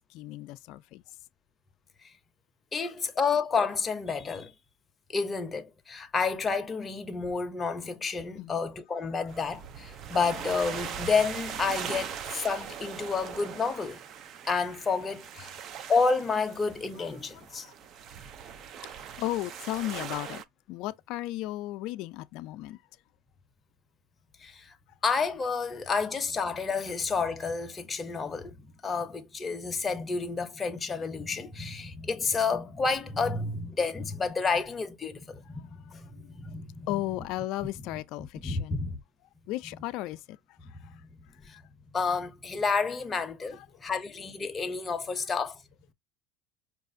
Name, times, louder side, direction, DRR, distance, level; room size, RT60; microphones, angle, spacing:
voice 1, 0.1-1.0 2.8-2.9 8.4-8.6 17.0-17.7 18.8-20.4 20.7-22.8 35.8-35.9 36.9-38.9 39.5-41.0 41.5-41.6 43.5-43.7 45.2-45.3, left 16 dB, 60° left, 0.4 m, -36 dB
voice 2, 2.7-4.5 5.1-14.0 14.4-15.5 15.9-17.7 24.4-24.7 25.0-28.6 28.8-37.0 38.4-39.0 41.5-41.6 41.9-45.6, left 4 dB, 20° left, 0.6 m, -30 dB
sound 1, 9.3-20.4, right 8 dB, 40° right, 0.5 m, -40 dB
4.7 x 2.5 x 2.6 m
supercardioid pair, 125°, 0 cm